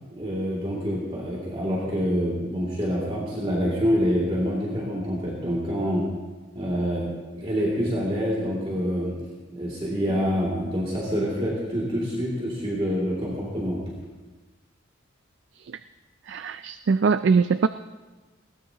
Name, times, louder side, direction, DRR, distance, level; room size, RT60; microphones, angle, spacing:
voice 1, 0.1-6.1 6.5-7.1 7.3-9.1 9.5-13.8, equal, 30° right, -6 dB, 2.5 m, -26 dB
voice 2, 16.3-17.7, right 5 dB, 60° right, 12 dB, 0.3 m, -22 dB
20.5 x 17.5 x 2.9 m, 1.3 s
head